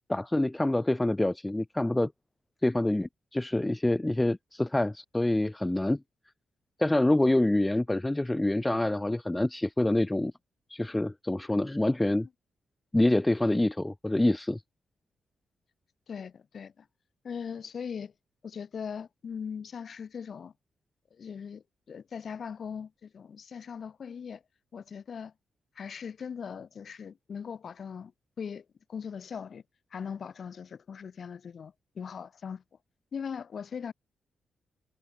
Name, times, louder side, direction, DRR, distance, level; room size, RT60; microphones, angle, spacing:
voice 1, 0.1-2.1 2.6-6.0 6.8-10.3 10.7-12.3 12.9-14.6, left 1 dB, 10° left, 0.5 m, -26 dB
voice 2, 16.1-16.9 17.2-18.1 18.4-20.5 21.1-24.4 24.7-25.3 25.8-28.1 28.4-29.6 29.9-32.6 33.1-33.9, left 6 dB, 50° left, 1.2 m, -40 dB
wide cardioid pair, 130°, 0 cm